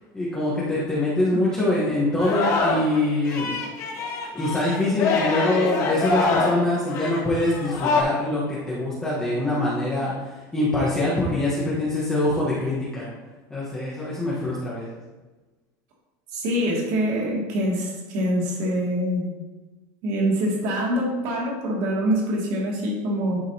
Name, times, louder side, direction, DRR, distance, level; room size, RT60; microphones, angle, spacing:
voice 1, 0.1-3.5 4.3-13.1 13.5-15.0, left 1 dB, 10° left, -8 dB, 1.2 m, -24 dB
Singing, 2.2-3.0 3.2-8.0, left 4 dB, 35° left, 1.1 m, -25 dB
voice 2, 16.3-19.3 20.0-23.4, equal, 55° right, -4 dB, 2.5 m, -25 dB
11.0 x 5.0 x 2.9 m, 1.2 s
cardioid pair, 170°, 10 cm